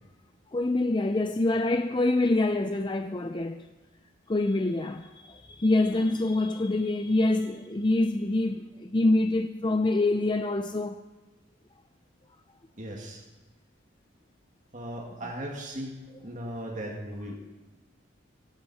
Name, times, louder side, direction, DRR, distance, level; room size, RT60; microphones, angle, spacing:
voice 1, 0.5-3.7 4.3-11.0, left 2 dB, 25° left, 0.5 m, -26 dB
voice 2, 12.8-13.2 14.7-17.4, right 1 dB, 40° right, 2.1 m, -37 dB
17.0 x 16.5 x 4.2 m
head